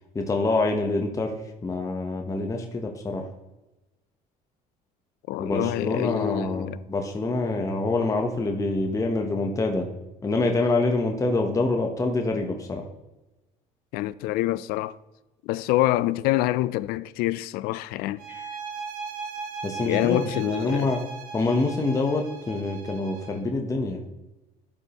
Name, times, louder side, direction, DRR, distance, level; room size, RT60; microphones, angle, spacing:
voice 1, 0.1-3.3 5.4-9.9 10.2-12.8 19.6-21.0 21.3-24.0, left 2 dB, 20° left, 0.9 m, -26 dB
voice 2, 5.3-6.8 13.9-15.0 15.4-18.5 19.8-20.9 21.8-21.9, left 15 dB, 80° left, 0.4 m, -26 dB
sound 1, 18.2-23.5, right 5 dB, 65° right, 1.2 m, -38 dB
12.0 x 5.5 x 2.9 m
cardioid pair, 115°, 16 cm